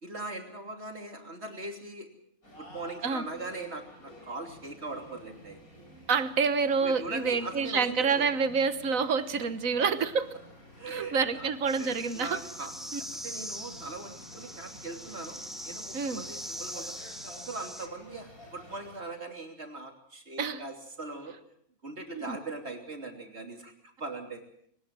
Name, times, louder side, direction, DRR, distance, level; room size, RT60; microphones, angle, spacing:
voice 1, 0.0-2.1 2.6-5.6 6.8-8.3 10.8-11.5 11.8-12.7 13.2-17.0 17.2-21.4 21.8-23.7 24.0-24.4, right 3 dB, 50° right, 4 dB, 3.4 m, -40 dB
sound 1, 2.4-19.0, left 1 dB, 85° left, 6.8 m, -51 dB
voice 2, 6.1-10.3 10.9-12.4 12.9-13.0 15.9-16.2 20.4-20.6 22.3-22.4, right 5 dB, 70° right, 12 dB, 1.6 m, -28 dB
sound 2, 11.7-17.9, equal, ahead, 1.9 m, -42 dB
21.0 x 19.5 x 7.6 m, 0.68 s
omnidirectional pair, 1.5 m